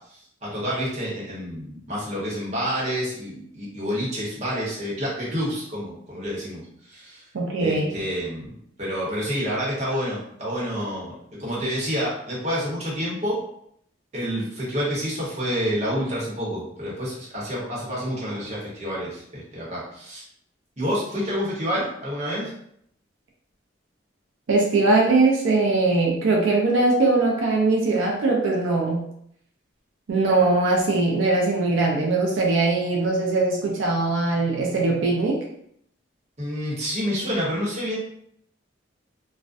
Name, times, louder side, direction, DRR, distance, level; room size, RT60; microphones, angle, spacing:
voice 1, 0.1-7.2 7.6-11.1 11.4-13.4 14.1-20.2 20.8-22.5 36.4-38.0, equal, 35° right, -6 dB, 0.9 m, -28 dB
voice 2, 7.3-7.9 24.5-29.0 30.1-35.4, right 3 dB, 85° right, -1 dB, 0.4 m, -21 dB
2.4 x 2.1 x 2.4 m, 0.70 s
head